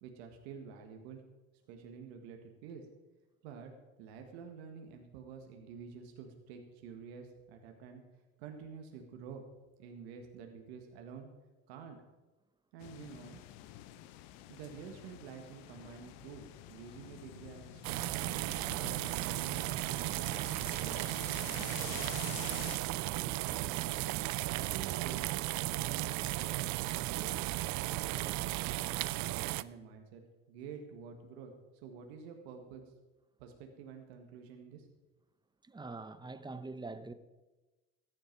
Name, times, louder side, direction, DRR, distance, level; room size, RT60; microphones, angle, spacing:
voice 1, 0.0-1.2 1.7-2.9 3.4-3.7 4.0-8.0 8.4-9.4 9.8-11.3 11.7-12.0 12.7-13.4 14.5-21.1 21.5-24.0 24.5-27.4 27.9-32.8 33.4-34.9, right 6 dB, 85° right, 1.6 m, -49 dB
sound 1, 12.8-22.8, left 13 dB, 80° left, 0.8 m, -49 dB
sound 2, 17.8-29.6, right 18 dB, 65° right, 0.5 m, -35 dB
voice 2, 35.6-37.1, right 3 dB, 15° right, 0.9 m, -44 dB
14.5 x 10.5 x 4.6 m
supercardioid pair, 80°, 31 cm